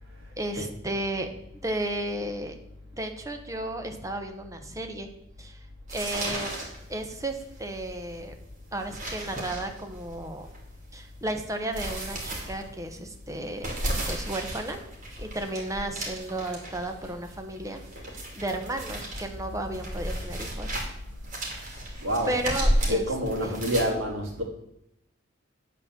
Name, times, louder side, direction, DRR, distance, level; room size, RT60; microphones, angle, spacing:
voice 1, 0.4-1.3 1.6-2.6 2.9-5.1 5.4-5.7 5.9-6.5 6.9-8.3 8.7-10.5 10.9-13.7 14.1-14.8 15.2-20.8 21.8-22.0 22.3-23.1 23.4-23.6, right 1 dB, 15° right, 5 dB, 0.9 m, -33 dB
sound 1, 5.9-23.8, right 1 dB, 40° right, 2.7 m, -33 dB
voice 2, 22.0-24.4, equal, 70° right, -1 dB, 2.4 m, -28 dB
9.7 x 4.2 x 7.4 m, 0.79 s
head